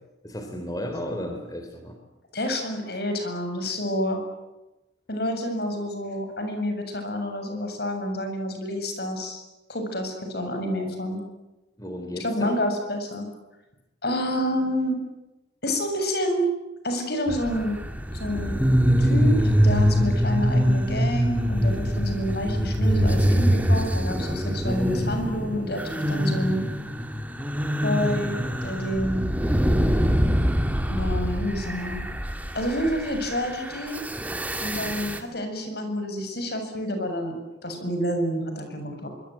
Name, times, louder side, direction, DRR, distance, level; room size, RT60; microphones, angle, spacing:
voice 1, 0.2-2.0 11.8-12.6, left 1 dB, 20° left, 5 dB, 3.5 m, -34 dB
voice 2, 2.3-4.2 5.1-9.4 9.7-11.2 12.2-13.3 14.0-15.0 15.6-16.4 16.8-17.8 18.1-18.6 19.0-25.8 26.1-26.6 27.8-29.3 30.9-32.0 32.5-34.0 34.6-39.1, equal, 55° left, 6 dB, 7.5 m, -28 dB
sound 1, 17.3-35.2, equal, 10° right, 2.4 m, -24 dB
25.5 x 25.0 x 9.2 m, 0.99 s
head